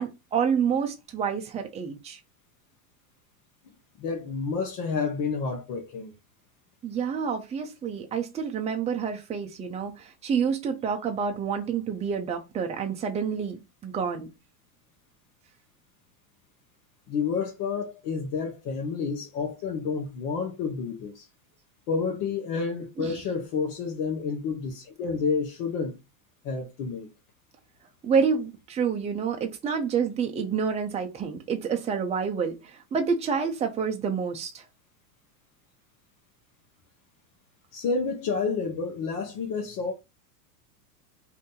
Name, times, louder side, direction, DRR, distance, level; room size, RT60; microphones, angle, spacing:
voice 1, 0.0-2.2 6.8-9.9 10.2-14.3 23.0-23.1 28.0-32.6 32.9-34.5, right 6 dB, 15° right, 0.6 m, -28 dB
voice 2, 4.0-6.1 17.1-21.3 21.9-26.0 26.4-27.1 37.7-39.9, left 5 dB, 50° left, 1.0 m, -29 dB
2.8 x 2.6 x 3.7 m
supercardioid pair, 120°, 47 cm